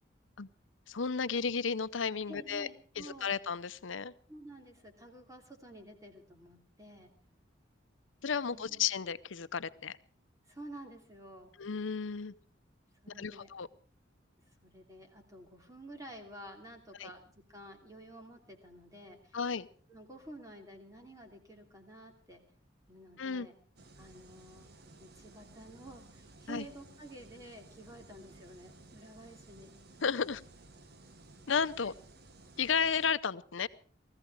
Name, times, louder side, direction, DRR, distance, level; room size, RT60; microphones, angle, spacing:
voice 1, 0.9-2.7 3.0-4.1 8.2-10.0 11.6-12.3 13.2-13.7 17.0-17.1 19.3-19.7 23.2-23.5 26.5-26.6 30.0-30.4 31.5-31.9 32.6-33.7, left 6 dB, 85° left, 0.7 m, -33 dB
voice 2, 2.3-3.3 4.3-7.1 8.5-8.9 10.4-11.5 13.0-13.5 14.5-19.4 19.9-22.4 22.9-23.5 24.0-24.7 25.0-29.7 31.8-31.9, right 1 dB, 20° right, 2.9 m, -51 dB
sound 1, 23.8-33.1, right 2 dB, 55° right, 1.2 m, -56 dB
19.0 x 15.0 x 4.8 m
head